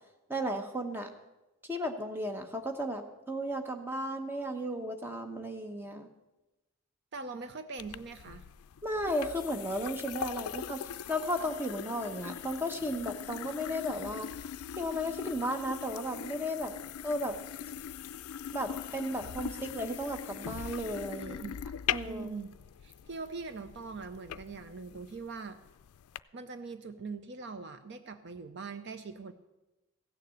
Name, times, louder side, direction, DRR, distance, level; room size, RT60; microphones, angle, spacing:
voice 1, 0.3-1.1 1.6-6.1 8.8-14.3 14.8-16.7 17.0-17.3 18.5-21.4 21.9-22.3, equal, 10° right, 5 dB, 0.9 m, -34 dB
voice 2, 7.1-8.4 21.1-21.6 22.0-22.5 22.8-25.6 26.3-29.3, right 4 dB, 50° right, 10 dB, 0.5 m, -42 dB
sound 1, 7.8-26.2, left 9 dB, 85° left, 0.4 m, -41 dB
15.5 x 6.7 x 8.3 m, 1.0 s
head